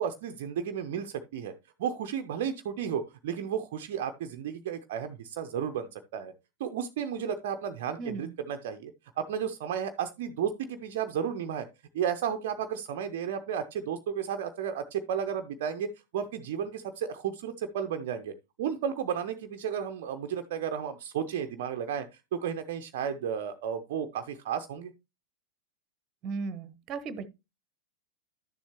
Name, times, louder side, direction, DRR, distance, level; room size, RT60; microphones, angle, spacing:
voice 1, 0.0-1.5 1.8-6.3 6.6-8.9 9.2-11.7 11.9-15.9 16.1-18.3 18.6-22.1 22.3-24.9, right 8 dB, 55° right, 0.6 m, -33 dB
voice 2, 26.2-27.3, right 4 dB, 35° right, 1.0 m, -36 dB
11.5 x 7.1 x 2.9 m
figure-of-eight pair, 90°, 0 cm